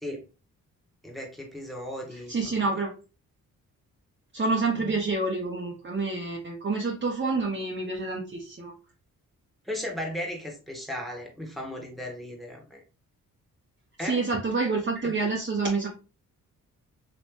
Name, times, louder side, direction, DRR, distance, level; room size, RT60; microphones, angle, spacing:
voice 1, 1.0-2.7 4.8-5.0 9.6-12.8 14.0-14.2 15.0-15.1, left 1 dB, ahead, 1 dB, 1.6 m, -36 dB
voice 2, 2.3-2.9 4.3-8.7 14.0-15.9, right 3 dB, 30° right, -2 dB, 1.0 m, -28 dB
3.2 x 3.0 x 3.1 m, 0.32 s
supercardioid pair, 55°, 35 cm